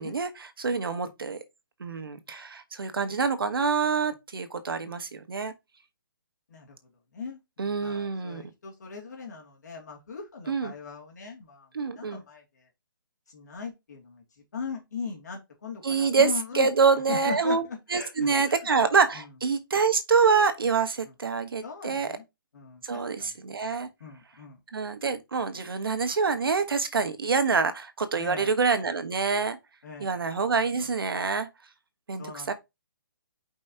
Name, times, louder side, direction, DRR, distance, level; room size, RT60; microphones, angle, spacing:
voice 1, 0.0-1.4 1.8-5.5 7.6-8.4 10.5-10.7 11.7-12.2 15.8-22.2 22.8-23.9 24.7-29.6 30.0-31.5 32.1-32.5, right 5 dB, 85° right, 1.5 m, -26 dB
voice 2, 7.1-11.7 11.9-12.4 13.3-14.2 14.5-16.7 17.1-18.6 19.2-19.3 21.6-22.2 22.5-23.3 24.0-24.6 28.2-28.5 29.8-30.2 32.2-32.5, left 5 dB, 50° left, 2.6 m, -39 dB
6.8 x 5.3 x 2.9 m
hypercardioid pair, 175°, 12 cm